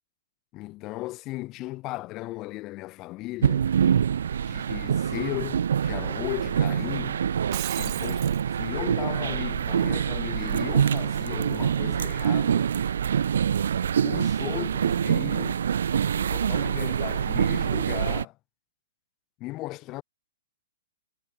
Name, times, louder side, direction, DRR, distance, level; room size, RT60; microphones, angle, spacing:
voice 1, 0.5-3.7 4.5-7.2 7.8-8.2 8.6-12.7 14.0-15.6 16.2-18.4 19.4-20.0, left 19 dB, 30° left, 1.6 m, -36 dB
sound 1, 3.4-18.2, right 8 dB, 75° right, 1.0 m, -25 dB
Shatter, 7.3-8.4, right 24 dB, 40° right, 1.5 m, -35 dB
hypercardioid pair, 140°, 0 cm